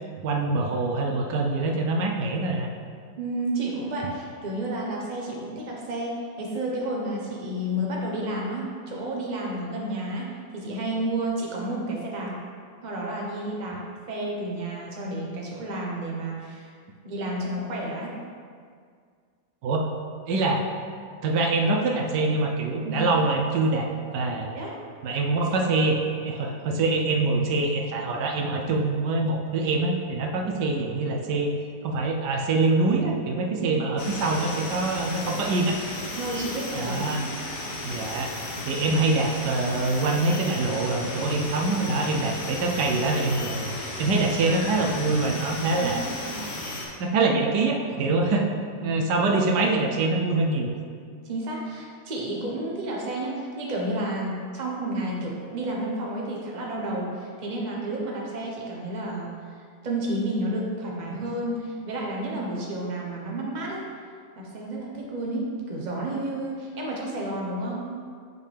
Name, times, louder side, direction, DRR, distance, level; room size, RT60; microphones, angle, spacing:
voice 1, 0.2-2.7 19.6-19.9 20.3-20.7 21.2-24.5 25.0-26.0 26.2-31.5 31.8-35.8 36.7-37.2 37.8-38.3 38.6-46.0 47.0-48.5 48.8-50.7 61.2-61.3, right 3 dB, 80° right, 1 dB, 1.3 m, -24 dB
voice 2, 3.2-10.3 10.5-12.4 12.8-13.8 14.1-16.7 17.0-18.1 22.8-23.0 24.5-24.7 25.5-25.6 33.6-33.7 36.2-37.2 45.8-46.4 51.2-63.8 64.3-67.9, right 1 dB, 30° right, -3 dB, 1.0 m, -31 dB
sound 1, 34.0-46.9, left 2 dB, 80° left, 1.7 m, -35 dB
8.7 x 5.1 x 3.4 m, 2.1 s
omnidirectional pair, 1.8 m